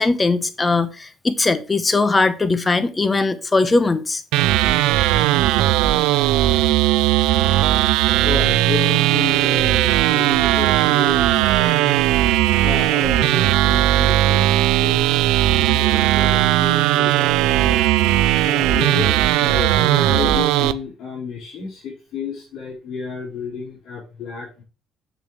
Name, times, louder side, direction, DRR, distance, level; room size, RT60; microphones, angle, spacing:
voice 1, 0.0-4.2, left 3 dB, 20° left, 1.1 m, -19 dB
sound 1, 4.3-20.7, right 14 dB, 85° right, 0.4 m, -17 dB
voice 2, 8.2-12.0 12.6-15.1 15.5-17.8 18.4-24.6, left 5 dB, 70° left, 4.6 m, -31 dB
7.6 x 6.9 x 3.3 m
cardioid pair, 90°, 0 cm